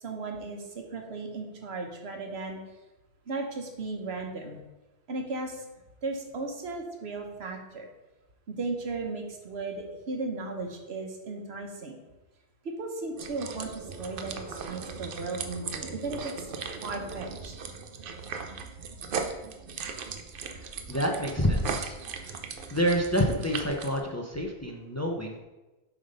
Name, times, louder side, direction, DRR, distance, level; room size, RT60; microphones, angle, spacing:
voice 1, 0.0-2.6 3.3-4.6 5.1-5.6 6.0-7.9 8.5-12.0 12.8-14.3 14.7-16.5 16.8-17.5, right 3 dB, 85° right, 3 dB, 1.3 m, -36 dB
sound 1, 13.2-24.0, right 5 dB, 65° right, 0.8 m, -38 dB
voice 2, 20.5-22.0 22.2-22.3 22.7-25.4, equal, 20° left, 1 dB, 0.6 m, -28 dB
7.3 x 3.5 x 5.3 m, 1.1 s
omnidirectional pair, 1.0 m